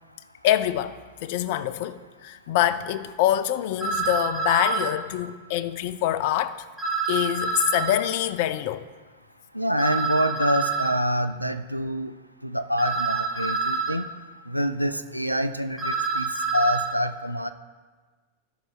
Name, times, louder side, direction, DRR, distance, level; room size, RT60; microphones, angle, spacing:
voice 1, 0.4-6.6 7.1-8.8, left 12 dB, 50° left, 0.4 m, -25 dB
sound 1, 3.8-4.9 6.8-7.9 9.8-10.9 12.8-13.9 15.8-16.8, right 4 dB, 10° right, 2.1 m, -27 dB
voice 2, 9.5-12.1 12.4-14.0 14.5-16.3 16.5-17.5, equal, 90° right, 0.4 m, -26 dB
15.0 x 5.6 x 2.2 m
figure-of-eight pair, 90°, 0 cm